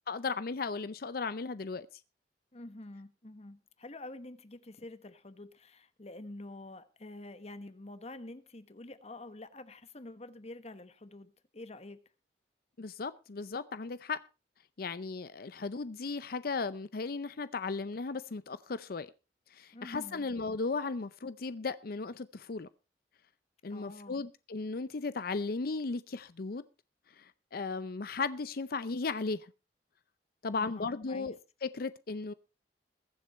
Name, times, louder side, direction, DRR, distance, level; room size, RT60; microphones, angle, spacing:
voice 1, 0.1-1.9 12.8-14.2 14.8-19.1 19.5-22.7 23.6-26.6 27.1-29.5 30.4-32.3, left 4 dB, 60° left, 0.6 m, -36 dB
voice 2, 2.5-12.0 19.7-20.3 23.7-24.2 30.5-31.3, left 2 dB, 40° left, 1.2 m, -47 dB
21.5 x 7.7 x 4.2 m
head